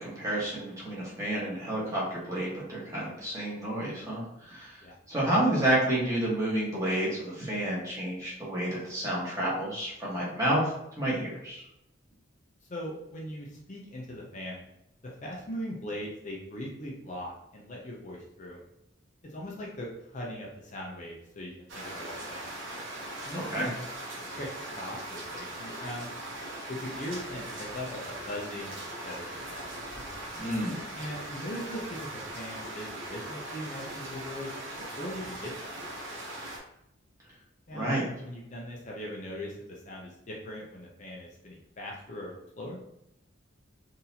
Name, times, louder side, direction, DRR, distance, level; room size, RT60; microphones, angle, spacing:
voice 1, 0.0-4.8 5.1-10.7 11.0-11.6 23.3-23.7 30.4-30.8 37.7-38.1, right 1 dB, 15° right, -6 dB, 1.3 m, -30 dB
voice 2, 12.7-14.7 15.2-18.6 19.3-22.5 23.2-23.7 24.3-26.1 26.7-29.7 30.9-34.6 35.0-35.5 35.8-35.9 37.7-37.9 38.2-42.8, left 1 dB, 35° left, -3 dB, 0.6 m, -40 dB
sound 1, 21.7-36.6, right 1 dB, 65° right, 1.0 m, -40 dB
3.9 x 2.7 x 2.7 m, 0.82 s
head